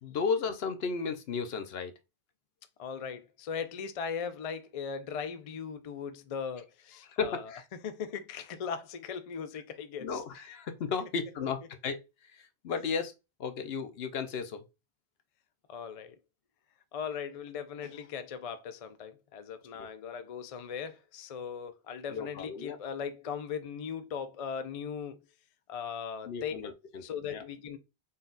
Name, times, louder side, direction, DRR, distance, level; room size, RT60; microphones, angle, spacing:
voice 1, 0.0-1.9 7.1-7.6 10.0-12.0 12.6-13.1 13.4-14.6 19.8-19.9 22.1-22.8 26.3-27.0 27.3-27.4, left 5 dB, 70° left, 0.9 m, -34 dB
voice 2, 2.8-10.2 15.7-16.2 16.9-25.2 25.7-26.6 27.0-27.8, left 6 dB, 50° left, 0.4 m, -39 dB
4.0 x 2.3 x 3.8 m
omnidirectional pair, 1.1 m